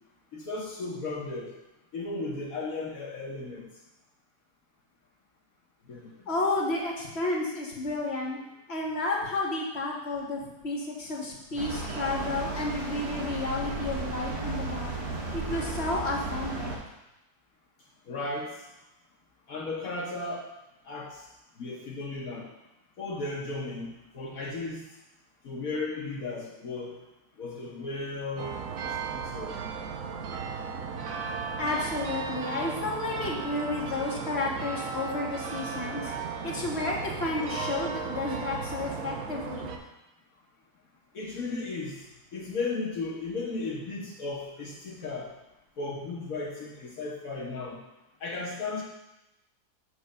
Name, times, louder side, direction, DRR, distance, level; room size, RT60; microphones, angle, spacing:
voice 1, 0.3-1.5 1.9-3.7 5.9-6.1 18.1-18.6 19.5-20.5 20.9-21.2 21.6-22.5 23.0-24.8 25.4-26.9 27.4-28.6 28.8-29.6 41.1-42.0 42.3-45.3 45.8-47.8 48.2-48.8, left 3 dB, 60° left, -1 dB, 1.3 m, -35 dB
voice 2, 6.3-8.4 8.7-14.9 15.3-16.7 31.6-36.1 36.4-39.7, left 2 dB, 45° left, -2 dB, 1.4 m, -31 dB
sound 1, 11.6-16.8, right 2 dB, 40° right, 1.3 m, -34 dB
sound 2, 28.4-39.8, right 5 dB, 65° right, 1.1 m, -35 dB
8.0 x 3.2 x 6.4 m, 0.93 s
omnidirectional pair, 1.7 m